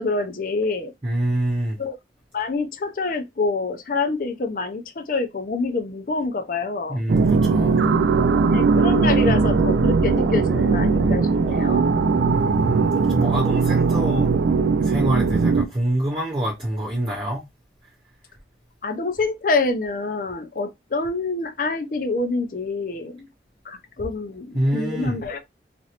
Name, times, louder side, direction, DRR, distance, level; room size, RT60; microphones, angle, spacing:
voice 1, 0.0-0.9 1.8-2.0 2.3-7.0 8.5-11.9 18.8-23.3 23.6-25.5, left 3 dB, 50° left, 0.5 m, -26 dB
voice 2, 1.0-1.8 6.9-7.8 9.3-9.6 12.3-14.3 14.8-17.4 24.5-25.2, right 1 dB, 25° right, 0.6 m, -26 dB
sound 1, 7.1-15.7, right 4 dB, 80° right, 0.3 m, -19 dB
3.0 x 2.5 x 2.8 m
head